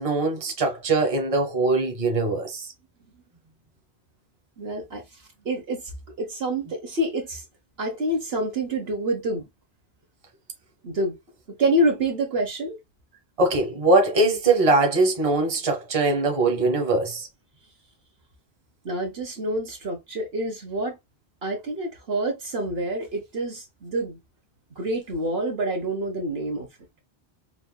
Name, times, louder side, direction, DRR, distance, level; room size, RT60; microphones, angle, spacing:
voice 1, 0.0-2.7 13.4-17.3, right 2 dB, 30° right, 1.3 m, -22 dB
voice 2, 4.6-5.0 5.4-5.8 6.2-7.4 7.8-9.4 10.8-11.2 11.5-12.8 18.8-21.0 21.4-24.2 24.8-26.7, right 1 dB, 65° right, 1.5 m, -27 dB
5.9 x 2.8 x 2.3 m
omnidirectional pair, 1.1 m